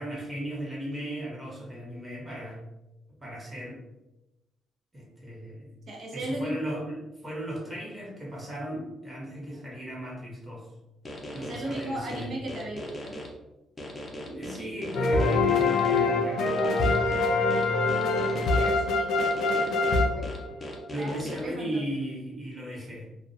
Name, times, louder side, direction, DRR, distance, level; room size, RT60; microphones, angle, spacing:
voice 1, 0.0-2.6 3.2-3.8 4.9-5.7 6.1-10.7 11.3-12.3 14.3-16.9 20.9-23.1, right 1 dB, 20° right, -4 dB, 1.0 m, -36 dB
voice 2, 5.9-6.6 11.4-13.2 18.2-20.3 21.0-21.8, right 1 dB, 60° right, -1 dB, 0.6 m, -37 dB
sound 1, 11.0-13.3 13.8-16.0 16.5-18.7 19.2-21.4, left 1 dB, 30° left, 0.6 m, -39 dB
sound 2, 14.9-20.9, left 3 dB, 80° left, 0.3 m, -24 dB
2.4 x 2.1 x 2.5 m, 0.97 s
cardioid pair, 90°, 0 cm